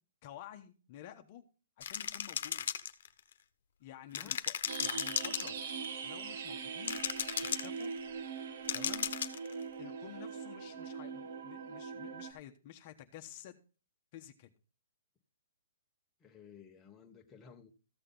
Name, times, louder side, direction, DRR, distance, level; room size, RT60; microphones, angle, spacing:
voice 1, 0.2-1.4 1.8-2.6 3.8-5.6 6.0-7.0 7.4-7.9 8.7-9.1 9.8-13.6 14.1-14.5, left 11 dB, 35° left, 1.0 m, -51 dB
sound 1, 1.8-3.3 4.1-5.8 6.8-7.8 8.7-9.5, left 8 dB, 60° left, 1.1 m, -35 dB
sound 2, 4.7-12.3, right 6 dB, 55° right, 1.5 m, -42 dB
voice 2, 16.2-17.7, left 7 dB, 10° left, 1.1 m, -55 dB
14.5 x 6.6 x 3.8 m
hypercardioid pair, 160°, 0 cm